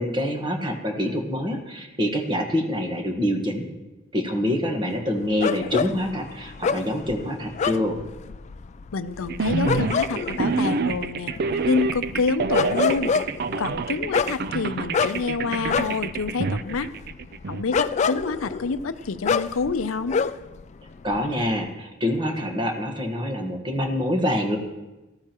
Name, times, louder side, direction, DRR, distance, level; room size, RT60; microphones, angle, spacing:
voice 1, 0.0-3.7 4.1-8.0 21.0-24.6, left 1 dB, 25° right, 3 dB, 1.4 m, -26 dB
sound 1, 5.4-20.6 20.9-21.7, left 5 dB, 35° left, 0.3 m, -28 dB
voice 2, 8.9-11.3 11.7-13.1 13.6-16.9 17.5-20.2, left 4 dB, 85° left, 12 dB, 0.6 m, -27 dB
sound 2, 9.3-17.6, right 4 dB, 50° right, 0.4 m, -27 dB
18.0 x 14.0 x 3.0 m, 1.1 s
head